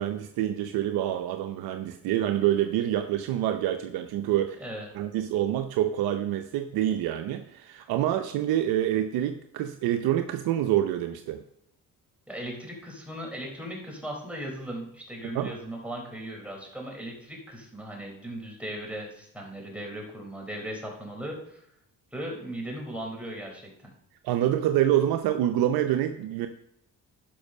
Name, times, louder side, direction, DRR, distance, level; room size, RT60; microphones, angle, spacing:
voice 1, 0.0-4.6 4.9-11.4 15.3-15.6 24.2-26.5, right 12 dB, 85° right, 7 dB, 0.7 m, -26 dB
voice 2, 4.6-4.9 12.3-21.6 22.1-23.7, right 1 dB, 5° right, -1 dB, 3.9 m, -37 dB
12.0 x 5.5 x 5.4 m, 0.73 s
cardioid pair, 70°, 35 cm